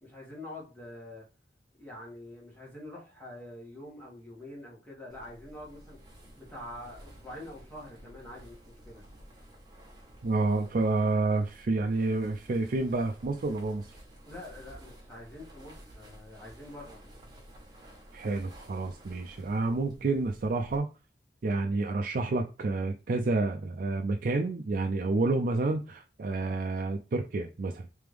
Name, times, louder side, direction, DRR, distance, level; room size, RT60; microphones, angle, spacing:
voice 1, 0.0-1.2 1.8-6.0 6.3-9.0 14.3-17.0, left 1 dB, 10° left, 1.7 m, -45 dB
sound 1, 5.1-20.8, right 1 dB, 25° right, 1.2 m, -52 dB
voice 2, 10.2-13.9 18.1-20.9 21.4-27.9, right 3 dB, 50° right, 0.4 m, -29 dB
3.4 x 3.4 x 3.3 m
head